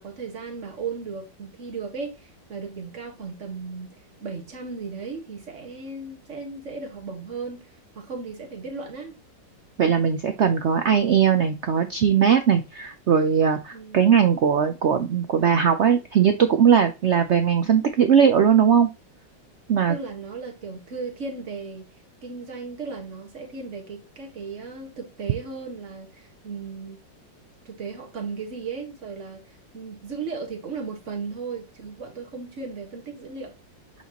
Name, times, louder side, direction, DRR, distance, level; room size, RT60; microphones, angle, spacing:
voice 1, 0.0-9.1 13.7-14.1 19.9-21.9 22.2-27.0 27.6-33.5, right 4 dB, 40° right, 1.8 m, -36 dB
voice 2, 9.8-18.9 19.7-19.9, right 7 dB, 80° right, 0.6 m, -19 dB
8.1 x 4.4 x 3.0 m
omnidirectional pair, 2.0 m